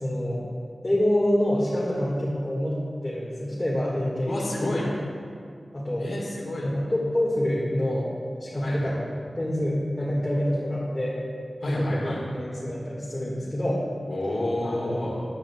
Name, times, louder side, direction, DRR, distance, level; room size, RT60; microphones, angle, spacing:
voice 1, 0.0-0.4 0.8-2.8 3.0-4.9 5.7-6.1 6.6-8.1 8.4-9.1 9.4-11.2 11.6-13.8 14.6-15.1, left 1 dB, 25° left, -6 dB, 1.7 m, -27 dB
voice 2, 4.3-4.9 6.0-6.7 8.6-8.9 11.6-12.2 14.1-15.2, left 1 dB, 70° left, -7 dB, 1.6 m, -30 dB
10.5 x 10.0 x 2.3 m, 2.2 s
cardioid pair, 45°, 0 cm